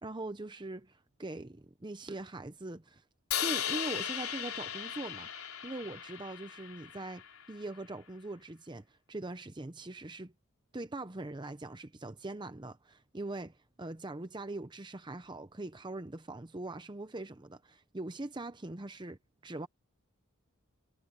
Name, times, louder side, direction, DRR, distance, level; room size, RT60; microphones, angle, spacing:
voice 1, 0.0-3.0 3.4-5.3 5.6-10.3 10.7-19.7, right 2 dB, 20° right, 0.7 m, -42 dB
Crash cymbal, 3.3-7.5, left 9 dB, 85° left, 4.0 m, -37 dB
head